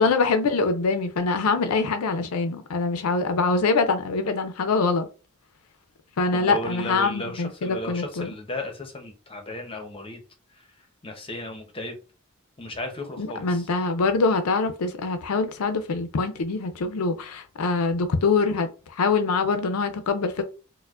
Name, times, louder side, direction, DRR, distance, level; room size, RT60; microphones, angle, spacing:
voice 1, 0.0-5.1 6.2-8.3 13.2-20.4, left 4 dB, 85° left, 0.5 m, -24 dB
voice 2, 6.3-10.2 10.5-10.7 11.0-12.0 12.6-13.7, left 1 dB, 25° left, 0.7 m, -35 dB
4.4 x 2.1 x 2.4 m
head